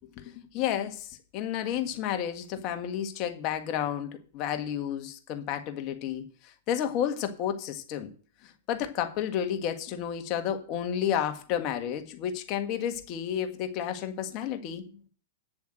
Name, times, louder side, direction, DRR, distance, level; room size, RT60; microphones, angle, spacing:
voice 1, 0.2-8.1 8.7-14.8, left 9 dB, 40° left, 1.7 m, -31 dB
9.1 x 7.1 x 7.8 m
hypercardioid pair, 135°, 0 cm